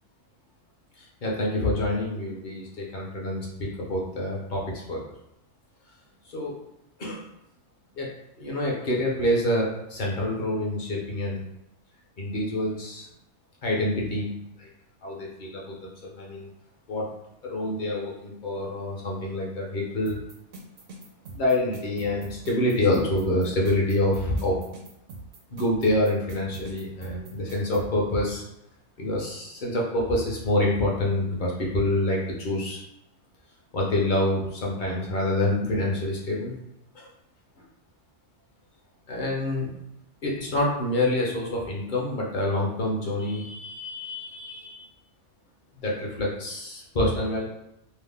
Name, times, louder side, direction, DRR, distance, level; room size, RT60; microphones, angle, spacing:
voice 1, 1.2-5.0 6.3-6.6 7.0-7.3 8.0-8.1 8.4-11.4 12.2-13.1 13.6-14.7 15.0-16.5 16.9-17.1 17.4-20.2 21.3-24.6 25.5-28.4 29.0-32.8 33.7-36.5 36.9-37.1 37.6-37.7 39.1-39.7 40.2-44.8 45.8-47.4, left 1 dB, 50° left, -3 dB, 0.7 m, -27 dB
sound 1, 20.1-27.9, right 2 dB, 85° right, 1.0 m, -42 dB
2.7 x 2.0 x 3.3 m, 0.84 s
omnidirectional pair, 1.3 m